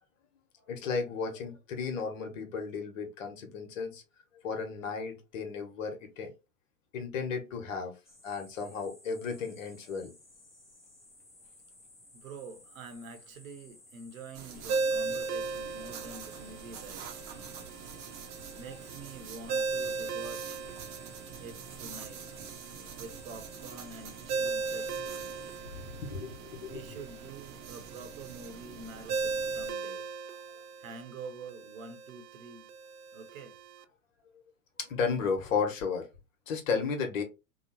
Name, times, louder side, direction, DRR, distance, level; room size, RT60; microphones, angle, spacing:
voice 1, 0.7-4.0 4.4-6.3 6.9-7.9 8.2-10.1 17.9-18.0 26.0-27.0 34.8-36.1 36.5-37.2, left 5 dB, 60° left, 1.1 m, -34 dB
sound 1, 8.0-25.6, left 1 dB, 5° left, 0.5 m, -57 dB
voice 2, 12.1-17.6 18.5-20.6 21.4-22.2 23.0-25.2 26.7-30.1 30.8-32.7 33.1-33.6, right 4 dB, 65° right, 0.9 m, -47 dB
sound 2, 14.3-29.7, right 6 dB, 35° right, 0.7 m, -47 dB
Ringtone, 14.7-33.8, right 4 dB, 80° right, 0.5 m, -38 dB
2.9 x 2.0 x 2.9 m
hypercardioid pair, 120°, 45 cm